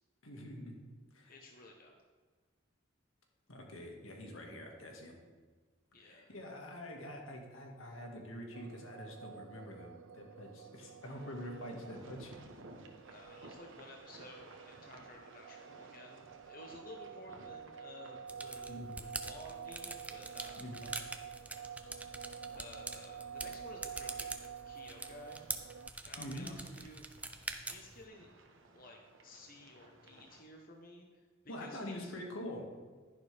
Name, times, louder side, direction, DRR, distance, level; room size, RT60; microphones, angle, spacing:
voice 1, 0.2-0.7 1.1-1.4 3.5-5.2 6.0-12.3 18.7-19.0 20.6-20.8 26.2-26.5 31.5-32.6, equal, 80° left, 1 dB, 1.9 m, -45 dB
voice 2, 1.3-1.9 5.9-6.3 13.0-18.8 19.2-21.1 21.8-22.0 22.5-25.4 26.0-27.1 27.5-28.3 28.7-32.1, left 1 dB, 45° left, 1 dB, 1.0 m, -54 dB
sound 1, 8.5-25.9, right 7 dB, 85° right, 0.3 m, -49 dB
sound 2, 11.0-30.4, right 2 dB, 65° right, 1.2 m, -59 dB
sound 3, 18.3-28.0, right 2 dB, 5° right, 0.5 m, -45 dB
11.5 x 10.5 x 3.5 m, 1.5 s
head